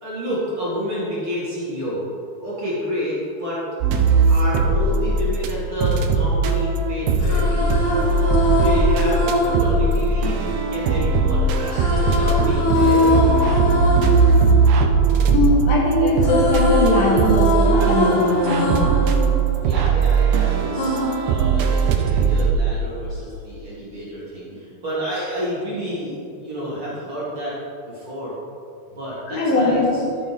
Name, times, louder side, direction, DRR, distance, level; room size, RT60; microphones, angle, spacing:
voice 1, 0.0-2.1 2.4-3.6 4.3-7.8 8.4-13.2 19.6-27.6 27.9-28.4 29.0-30.0, equal, 40° right, -9 dB, 2.6 m, -29 dB
sound 1, 3.8-5.5 5.8-22.5, right 4 dB, 80° right, 2.5 m, -19 dB
sound 2, 7.0-11.1 11.7-15.7 16.0-20.3 20.8-22.2, left 1 dB, 90° left, 3.6 m, -23 dB
voice 2, 15.3-18.8 29.3-29.9, left 2 dB, 70° left, -2 dB, 3.0 m, -20 dB
13.5 x 7.8 x 3.4 m, 2.6 s
omnidirectional pair, 4.4 m